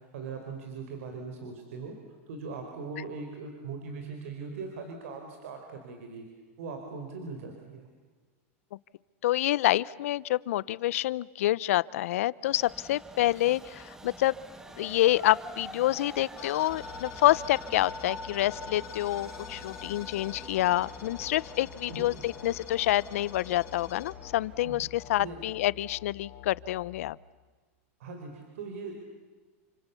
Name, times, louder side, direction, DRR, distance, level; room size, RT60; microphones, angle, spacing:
voice 1, 0.0-6.2 6.6-7.9 21.9-22.1 24.6-24.9 25.2-25.4 28.0-28.9, right 4 dB, 75° right, 4 dB, 4.6 m, -40 dB
voice 2, 9.2-14.3 14.8-27.2, left 15 dB, 75° left, 21 dB, 0.7 m, -27 dB
Train, 12.4-25.9, right 1 dB, 5° right, 1.4 m, -46 dB
sound 1, 16.4-27.1, left 11 dB, 40° left, 2.4 m, -46 dB
29.0 x 26.0 x 7.1 m, 1.4 s
supercardioid pair, 145°, 8 cm